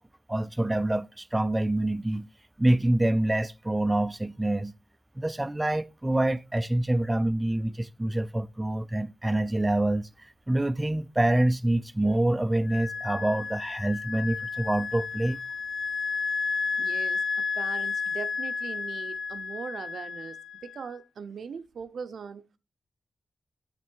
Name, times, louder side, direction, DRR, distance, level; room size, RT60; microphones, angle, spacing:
voice 1, 0.3-2.3 2.6-4.7 5.2-15.4, right 1 dB, 15° right, 0.4 m, -26 dB
Wind instrument woodwind instrument, 12.7-20.9, left 5 dB, 65° left, 0.4 m, -32 dB
voice 2, 16.8-20.4 20.6-22.5, right 6 dB, 85° right, 0.7 m, -40 dB
7.3 x 6.0 x 4.6 m
wide cardioid pair, 95°, 0 cm